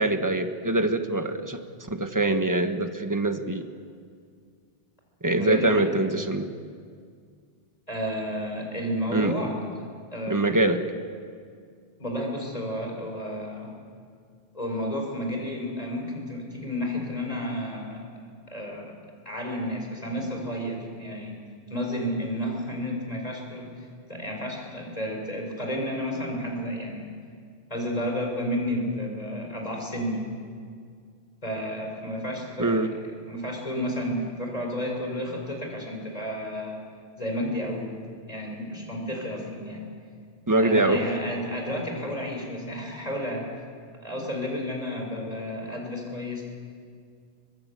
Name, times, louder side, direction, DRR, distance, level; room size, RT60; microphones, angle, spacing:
voice 1, 0.0-1.6 1.9-3.6 5.2-6.5 9.1-9.4 10.3-10.8 32.6-32.9 40.5-41.0, right 2 dB, 20° right, 7 dB, 1.3 m, -24 dB
voice 2, 5.3-6.0 7.9-9.9 10.1-10.6 12.0-13.7 14.5-18.0 18.5-18.9 19.2-21.4 21.7-27.1 27.7-30.3 31.4-32.9 33.3-36.8 37.2-38.0 38.3-39.9 40.6-43.5 44.0-46.4, equal, 35° left, 1 dB, 5.2 m, -31 dB
24.0 x 20.0 x 8.3 m, 2.1 s
omnidirectional pair, 1.1 m